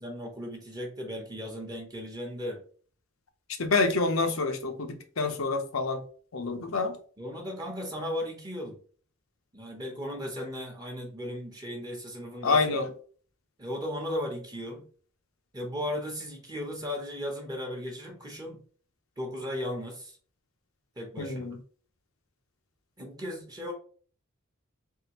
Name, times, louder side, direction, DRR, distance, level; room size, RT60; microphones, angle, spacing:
voice 1, 0.0-2.6 7.2-8.8 9.5-12.6 13.6-14.9 15.5-18.6 19.2-20.2 21.0-21.5 23.0-23.7, left 1 dB, 20° right, 0.9 m, -36 dB
voice 2, 3.6-6.0 6.3-7.0 12.4-12.9 21.2-21.6, left 3 dB, 80° left, 0.8 m, -27 dB
4.0 x 3.6 x 2.9 m
head